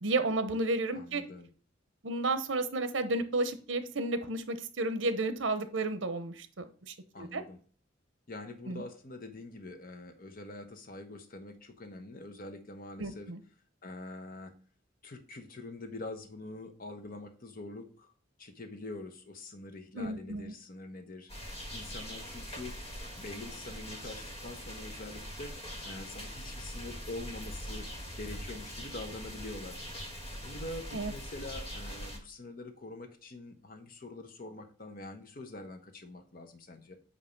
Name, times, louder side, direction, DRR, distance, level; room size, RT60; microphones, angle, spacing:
voice 1, 0.0-1.2 2.0-7.4 8.7-8.8 13.0-13.4 19.9-20.5 30.9-31.1, right 2 dB, 75° right, 10 dB, 0.9 m, -32 dB
voice 2, 0.9-1.5 7.1-7.6 8.3-13.3 13.8-14.5 15.0-18.1 18.4-27.9 28.2-29.8 30.4-37.0, left 2 dB, 50° left, 6 dB, 1.1 m, -45 dB
sound 1, 21.3-32.2, equal, 30° left, 1.8 m, -42 dB
8.5 x 2.9 x 5.2 m, 0.41 s
head